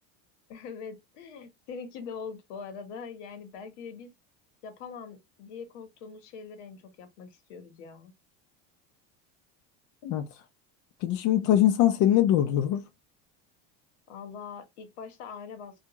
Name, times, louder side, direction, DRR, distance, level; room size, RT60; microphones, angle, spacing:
voice 1, 0.5-4.1 4.6-8.1 14.1-15.8, left 5 dB, 80° left, 1.1 m, -42 dB
voice 2, 11.0-12.9, left 12 dB, 55° left, 0.6 m, -22 dB
2.8 x 2.4 x 2.8 m
supercardioid pair, 135°, 35 cm